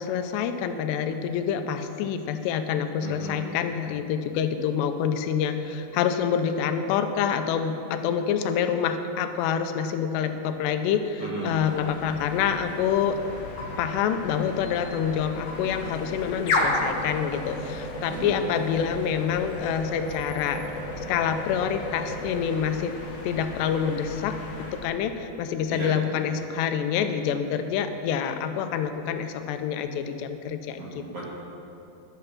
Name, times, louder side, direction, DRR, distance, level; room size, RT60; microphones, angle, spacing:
voice 1, 0.0-13.2 13.8-20.6 21.0-23.0 23.2-30.8, left 8 dB, 90° left, 8 dB, 2.9 m, -27 dB
voice 2, 3.0-3.4 11.2-11.6 18.1-18.4 25.7-25.9 30.8-31.3, right 3 dB, 55° right, -5 dB, 1.8 m, -35 dB
sound 1, 11.5-24.9, left 2 dB, 60° left, 3.3 m, -33 dB
12.0 x 11.0 x 5.9 m, 2.9 s
omnidirectional pair, 4.8 m